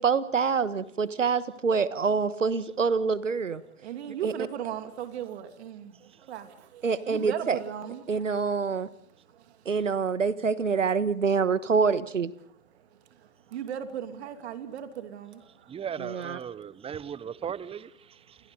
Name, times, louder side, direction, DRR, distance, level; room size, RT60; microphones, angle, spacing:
voice 1, 0.0-3.6 4.2-4.3 6.8-7.6 8.1-8.9 9.6-12.3 16.0-16.4, right 5 dB, 80° right, 1.5 m, -26 dB
voice 2, 3.8-8.3 9.1-9.7 12.7-15.9 16.6-16.7 17.3-17.4, right 9 dB, 60° right, 2.8 m, -38 dB
voice 3, 15.7-18.4, right 8 dB, 15° right, 0.9 m, -37 dB
29.0 x 28.0 x 4.0 m
figure-of-eight pair, 100°, 37 cm